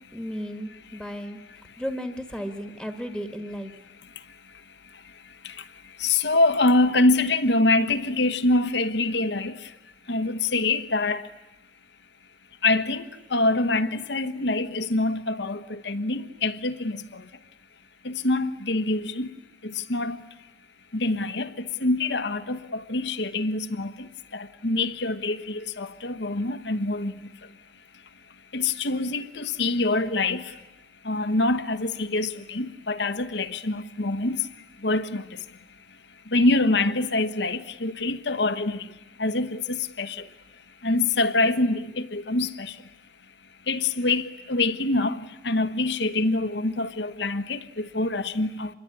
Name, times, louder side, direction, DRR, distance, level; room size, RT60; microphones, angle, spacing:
voice 1, 0.1-1.4 1.8-3.7, equal, 5° right, 1.7 m, -34 dB
voice 2, 6.0-9.5 10.1-11.2 12.6-13.0 13.3-17.0 18.0-19.3 19.9-20.2 20.9-21.5 21.8-22.6 22.9-23.9 24.3-27.1 28.5-30.4 31.1-34.4 34.8-35.2 36.3-38.8 39.2-40.1 40.8-42.7 43.7-45.2 45.4-48.7, left 2 dB, 70° left, 1.2 m, -25 dB
26.5 x 22.0 x 9.8 m
head